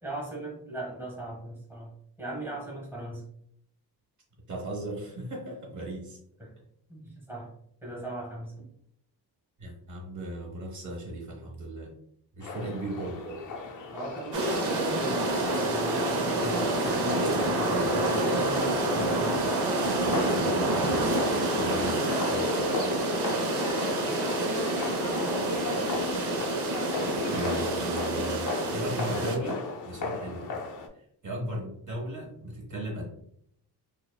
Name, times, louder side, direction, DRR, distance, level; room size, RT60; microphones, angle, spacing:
voice 1, 0.0-1.9 2.2-3.2 6.4-6.5 6.9-7.5 7.8-8.5 12.6-12.7 13.9-19.6, right 1 dB, 5° right, -4 dB, 1.0 m, -38 dB
voice 2, 4.5-6.2 9.6-11.9 12.3-13.4 21.5-23.3 27.3-30.6 30.9-33.0, right 1 dB, 50° right, -1 dB, 1.0 m, -37 dB
sound 1, 12.4-30.9, left 3 dB, 55° left, 0.6 m, -36 dB
sound 2, 14.3-29.4, right 2 dB, 75° right, 0.7 m, -27 dB
4.7 x 2.2 x 2.2 m, 0.69 s
wide cardioid pair, 160°, 39 cm